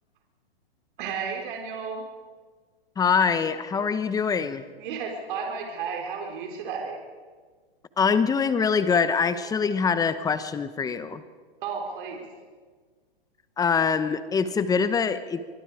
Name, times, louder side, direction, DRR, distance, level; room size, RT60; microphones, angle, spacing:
voice 1, 1.0-2.0 4.8-7.0 11.6-12.2, right 5 dB, 55° right, 1 dB, 4.2 m, -33 dB
voice 2, 3.0-4.6 8.0-11.2 13.6-15.4, left 6 dB, 10° left, 12 dB, 1.0 m, -24 dB
25.0 x 22.0 x 5.0 m, 1.5 s
hypercardioid pair, 130°, 31 cm